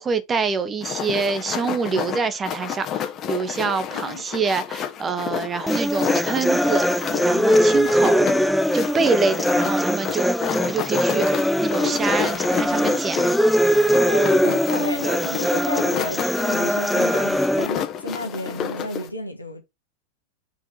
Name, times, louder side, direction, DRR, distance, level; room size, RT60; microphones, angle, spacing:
voice 1, 0.0-13.3, right 4 dB, 20° right, 1.0 m, -26 dB
sound 1, 0.8-19.1, left 9 dB, 30° left, 1.4 m, -30 dB
voice 2, 3.6-4.4 13.9-19.6, left 1 dB, 85° left, 1.6 m, -32 dB
sound 2, 5.7-17.7, equal, ahead, 0.4 m, -21 dB
6.0 x 4.6 x 4.1 m
figure-of-eight pair, 90°, 0 cm